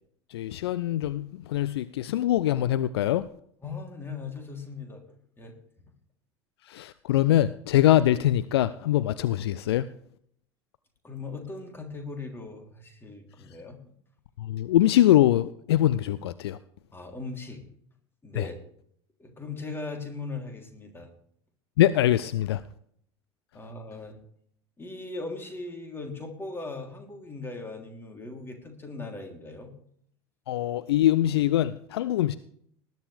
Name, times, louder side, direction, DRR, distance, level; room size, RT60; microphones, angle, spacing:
voice 1, 0.3-3.3 6.7-9.9 14.4-16.6 18.4-18.5 21.8-22.6 30.5-32.4, left 13 dB, 60° left, 0.5 m, -23 dB
voice 2, 3.6-5.0 5.4-5.5 11.0-13.8 16.9-17.6 18.2-18.6 19.2-21.1 23.5-24.2 24.8-29.7, left 3 dB, 15° left, 3.4 m, -39 dB
19.5 x 10.5 x 3.4 m
figure-of-eight pair, 75°, 15 cm